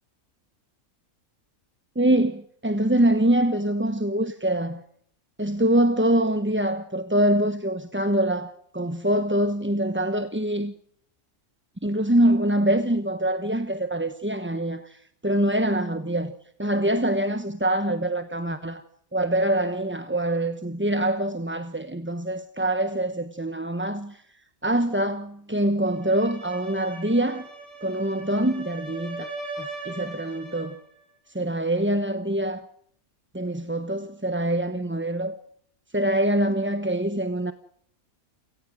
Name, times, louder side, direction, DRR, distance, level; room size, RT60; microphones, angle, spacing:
voice 1, 2.0-4.8 5.4-10.7 11.8-16.3 16.6-18.8 19.1-24.2 24.6-27.5 27.8-29.3 29.6-30.8 31.3-32.7 33.3-35.4 35.9-37.5, right 1 dB, 10° right, 0.9 m, -24 dB
sound 1, 25.9-30.8, right 3 dB, 50° right, 7.8 m, -39 dB
29.0 x 18.0 x 6.3 m
omnidirectional pair, 1.5 m